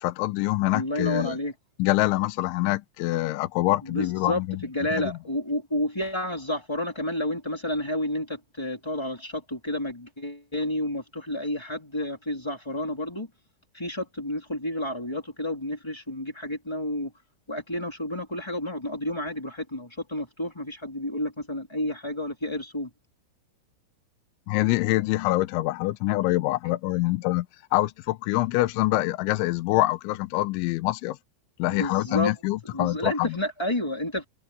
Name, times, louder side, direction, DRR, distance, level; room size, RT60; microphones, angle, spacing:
voice 1, 0.0-1.4 1.8-4.6 5.0-5.1 24.5-27.5 27.7-31.2 31.6-33.4, left 18 dB, 85° left, 2.9 m, -25 dB
voice 2, 0.7-1.5 3.8-13.3 13.7-17.1 17.5-22.9 31.6-32.3 32.7-34.2, left 1 dB, 5° left, 2.6 m, -30 dB
omnidirectional pair, 6.0 m